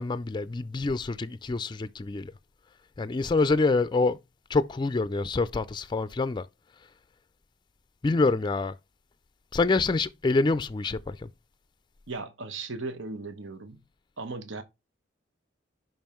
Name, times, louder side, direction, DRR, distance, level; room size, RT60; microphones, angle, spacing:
voice 1, 0.0-2.3 3.0-4.2 4.5-6.5 8.0-8.8 9.5-11.3, left 3 dB, 25° left, 0.3 m, -26 dB
voice 2, 12.1-13.8 14.2-14.6, right 3 dB, 90° right, 1.0 m, -37 dB
5.5 x 5.4 x 4.4 m
head